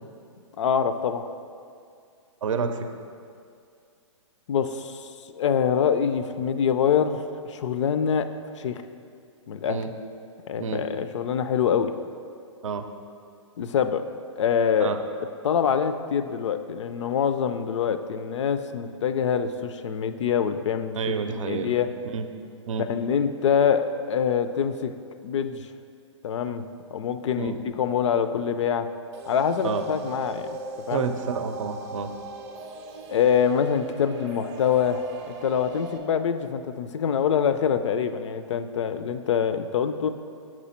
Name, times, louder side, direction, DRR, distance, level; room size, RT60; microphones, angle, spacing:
voice 1, 0.6-1.3 4.5-8.3 8.6-8.8 9.5-9.8 10.5-11.9 13.6-14.0 14.4-15.0 15.4-21.0 21.4-21.9 22.9-24.9 25.2-25.7 26.2-26.6 26.9-28.9 29.3-30.5 30.9-31.1 33.1-40.1, left 7 dB, 65° left, 10 dB, 0.4 m, -25 dB
voice 2, 2.4-2.9 9.7-9.9 10.6-10.8 12.6-12.9 14.8-15.0 21.0-21.7 22.1-22.3 22.7-22.9 27.4-27.6 29.6-29.8 30.9-32.1, right 6 dB, 80° right, 8 dB, 0.5 m, -29 dB
sound 1, 29.1-36.0, right 2 dB, 25° right, 0.5 m, -40 dB
6.1 x 5.0 x 4.3 m, 2.3 s
hypercardioid pair, 145°, 16 cm